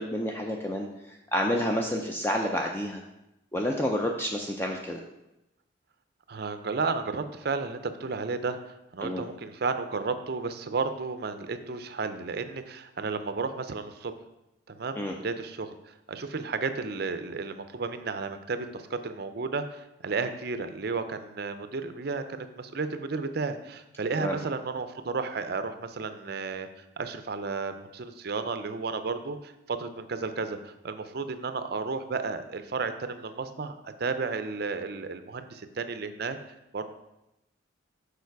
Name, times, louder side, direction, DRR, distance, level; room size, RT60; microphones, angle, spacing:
voice 1, 0.0-3.0 3.5-5.0 9.0-9.2 15.0-15.1 24.2-24.4, equal, 10° left, 2 dB, 0.4 m, -29 dB
voice 2, 6.3-8.6 8.9-14.1 14.7-26.7 27.0-36.4 36.7-36.9, right 4 dB, 55° right, 9 dB, 0.5 m, -33 dB
6.8 x 5.0 x 4.6 m, 0.91 s
head